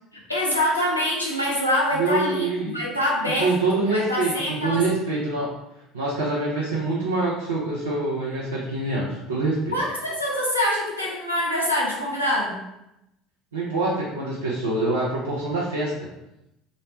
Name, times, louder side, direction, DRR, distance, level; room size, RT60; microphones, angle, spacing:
voice 1, 0.1-4.8 9.7-12.6, left 1 dB, 85° left, -5 dB, 0.6 m, -25 dB
voice 2, 1.9-2.7 3.4-5.5 5.9-9.7 13.5-15.9, right 3 dB, 80° right, -6 dB, 0.4 m, -25 dB
3.0 x 2.0 x 2.7 m, 0.87 s
figure-of-eight pair, 65°, 0 cm